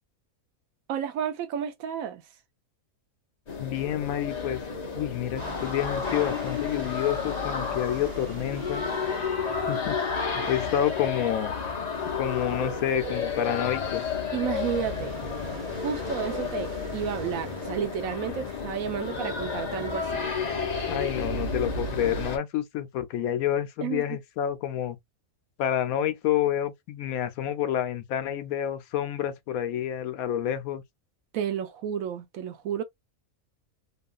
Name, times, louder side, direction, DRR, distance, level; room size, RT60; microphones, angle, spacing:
voice 1, 0.9-2.2 14.3-15.2 15.8-20.2 23.8-24.0 31.3-32.8, right 8 dB, 75° right, 1.0 m, -31 dB
sound 1, 3.5-22.4, left 5 dB, 35° left, 0.7 m, -32 dB
voice 2, 3.6-4.6 4.9-8.8 9.7-10.0 10.3-11.6 12.0-14.1 20.9-25.0 25.6-30.8, left 10 dB, 80° left, 1.0 m, -29 dB
sound 2, 5.3-10.8 14.3-19.1, right 1 dB, 50° right, 0.6 m, -43 dB
2.9 x 2.4 x 2.4 m
omnidirectional pair, 1.5 m